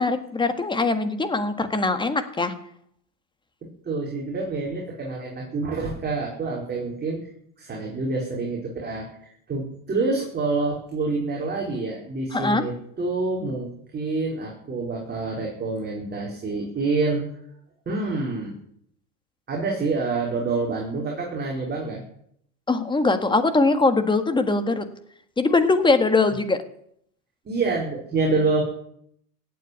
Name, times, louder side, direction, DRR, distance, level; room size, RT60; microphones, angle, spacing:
voice 1, 0.0-2.5 12.3-12.6 22.7-24.8 25.4-26.6, left 3 dB, 10° left, 9 dB, 1.7 m, -21 dB
voice 2, 3.8-7.2 7.6-17.2 17.9-18.5 19.5-22.0 27.4-28.6, right 3 dB, 20° right, -2 dB, 4.9 m, -27 dB
17.0 x 8.6 x 9.5 m, 0.69 s
supercardioid pair, 125°, 47 cm